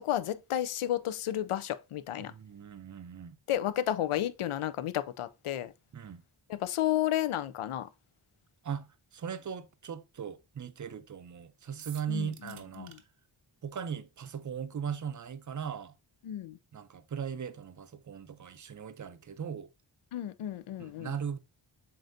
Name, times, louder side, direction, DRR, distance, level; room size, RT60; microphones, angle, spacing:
voice 1, 0.0-2.3 3.5-5.7 6.5-7.9 12.1-13.0 16.2-16.6 20.1-21.1, left 12 dB, 80° left, 0.5 m, -32 dB
voice 2, 2.2-3.4 5.9-6.2 8.6-13.0 13.6-15.9 16.7-19.7 20.8-21.4, right 7 dB, 40° right, 0.5 m, -39 dB
sound 1, 11.8-13.0, right 8 dB, 90° right, 0.7 m, -50 dB
7.5 x 2.7 x 2.6 m
wide cardioid pair, 85°, 50 cm